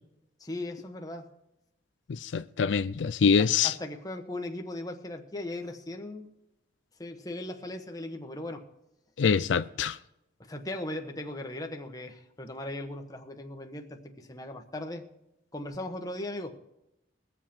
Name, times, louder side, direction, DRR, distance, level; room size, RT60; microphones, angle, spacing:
voice 1, 0.4-1.3 3.4-6.3 7.0-8.7 10.4-15.0 15.5-16.6, left 1 dB, 20° left, 1.2 m, -38 dB
voice 2, 2.1-3.7 9.2-10.0, left 6 dB, 85° left, 0.4 m, -25 dB
21.5 x 7.5 x 4.4 m
head